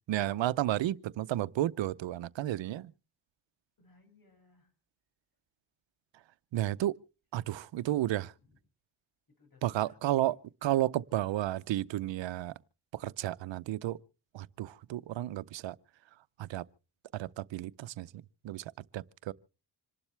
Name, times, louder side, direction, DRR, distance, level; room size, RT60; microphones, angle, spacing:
voice 1, 0.0-2.9 6.5-6.9 7.3-8.3 9.6-10.3 10.6-12.5 12.9-14.0 14.3-15.7 16.4-16.6 17.1-18.1 18.4-18.6 18.9-19.3, right 14 dB, 90° right, 0.7 m, -32 dB
voice 2, 3.8-4.7 7.6-7.7 8.0-8.6 9.4-10.2, left 3 dB, 50° left, 7.3 m, -64 dB
26.5 x 12.0 x 3.3 m
cardioid pair, 80°, 43 cm